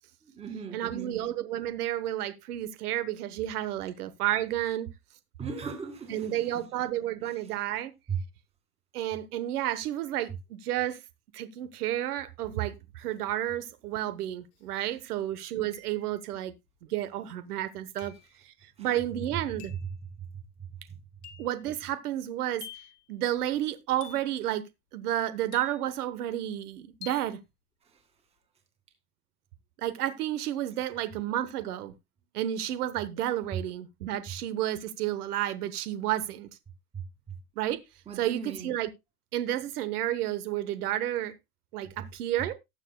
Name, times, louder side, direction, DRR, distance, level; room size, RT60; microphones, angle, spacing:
voice 1, 0.2-1.2 5.4-6.6 7.2-7.5 8.1-8.2 18.8-18.9 19.8-19.9 20.2-20.3 20.9-21.0 27.8-28.0 36.9-37.0 38.1-38.7, right 6 dB, 15° right, 2.0 m, -38 dB
voice 2, 0.7-4.9 6.1-7.9 8.9-11.0 11.3-16.5 16.9-18.1 18.4-19.7 21.4-22.6 23.1-24.6 24.9-27.4 29.8-31.9 32.3-36.5 37.6-37.8 38.2-38.9 39.3-41.3 41.7-42.5, right 12 dB, 70° right, 1.1 m, -31 dB
sound 1, 14.6-14.7 15.7-16.3 18.0-18.3 19.6-19.9 21.2-21.6 22.6-23.0 24.0-24.4 25.5-26.1 27.0-27.4, left 10 dB, 85° left, 2.9 m, -48 dB
18.5 x 7.0 x 2.2 m
supercardioid pair, 170°, 47 cm